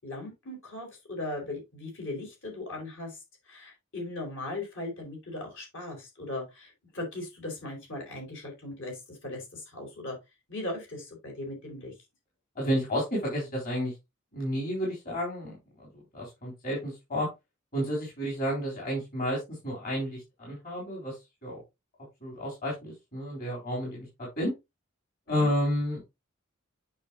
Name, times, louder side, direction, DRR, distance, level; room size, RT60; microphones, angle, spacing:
voice 1, 0.0-3.2 3.5-10.2 10.5-11.9 25.3-25.5, left 2 dB, 65° left, 1 dB, 4.8 m, -38 dB
voice 2, 12.6-13.9 14.3-17.3 17.7-21.1 21.4-21.6 22.2-24.5 25.3-26.0, equal, 45° left, -4 dB, 3.6 m, -31 dB
8.6 x 5.9 x 2.8 m, 0.22 s
head